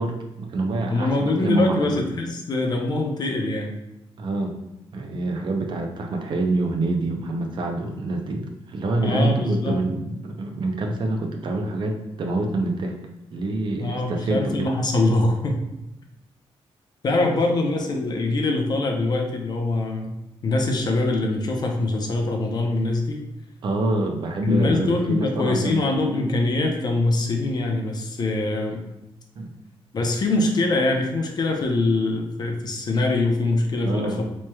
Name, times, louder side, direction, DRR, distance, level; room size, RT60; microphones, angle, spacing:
voice 1, 0.0-2.0 4.2-4.6 4.9-12.9 13.3-14.7 17.2-17.4 23.6-25.8 29.4-29.5 33.8-34.2, right 2 dB, 50° right, 2 dB, 0.5 m, -26 dB
voice 2, 0.9-3.8 9.0-9.8 13.8-15.6 17.0-20.2 20.4-23.2 24.4-28.8 29.9-34.2, left 2 dB, 40° left, 2 dB, 0.6 m, -23 dB
4.4 x 3.1 x 2.2 m, 0.91 s
wide cardioid pair, 150°, 10 cm